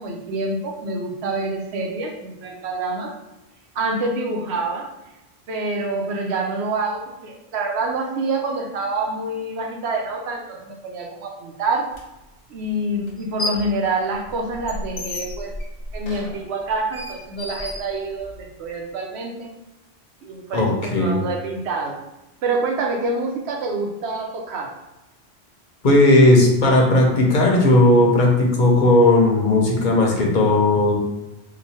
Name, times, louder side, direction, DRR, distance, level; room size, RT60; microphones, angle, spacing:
voice 1, 0.0-3.1 3.7-4.9 5.5-11.9 12.5-15.5 15.9-19.5 20.2-22.0 22.4-24.8, right 2 dB, 90° right, 2 dB, 0.9 m, -26 dB
sound 1, 11.9-12.0 13.1-13.7 14.1-18.5, left 1 dB, 80° left, 1.0 m, -32 dB
voice 2, 20.5-21.2 25.8-31.0, left 1 dB, 50° left, -1 dB, 0.8 m, -16 dB
3.0 x 2.2 x 4.1 m, 0.97 s
omnidirectional pair, 1.1 m